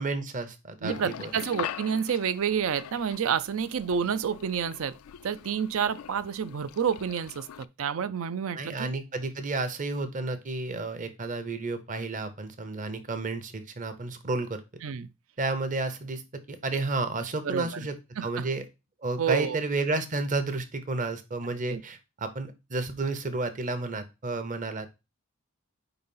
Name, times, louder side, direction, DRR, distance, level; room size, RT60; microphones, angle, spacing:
voice 1, 0.0-1.3 8.5-14.6 15.4-16.2 16.5-17.9 18.2-18.6 19.0-24.9, right 3 dB, 40° right, 0.8 m, -31 dB
voice 2, 0.8-4.9 5.2-7.5 7.8-8.9 14.8-15.1 17.4-17.9 18.2-18.4 19.2-19.6 21.7-21.8, right 7 dB, 70° right, 0.4 m, -29 dB
sound 1, 0.9-7.7, left 10 dB, 90° left, 0.4 m, -42 dB
4.7 x 4.0 x 5.4 m
head